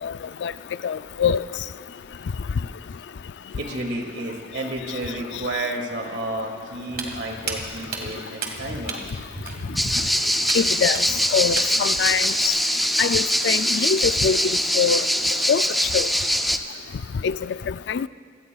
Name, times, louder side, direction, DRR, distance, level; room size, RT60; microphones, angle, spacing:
voice 1, 0.8-1.4 10.5-12.5 13.0-14.4 14.8-15.1 15.5-15.6 15.9-16.1 17.2-17.4 17.7-18.1, left 7 dB, 75° left, 15 dB, 0.4 m, -23 dB
voice 2, 3.6-9.0, right 1 dB, 80° right, 1 dB, 2.4 m, -31 dB
Walk footsteps, 6.9-12.5, right 3 dB, 50° right, 1.7 m, -35 dB
sound 1, 9.8-16.6, equal, ahead, 0.4 m, -22 dB
26.5 x 17.5 x 2.4 m, 2.1 s
head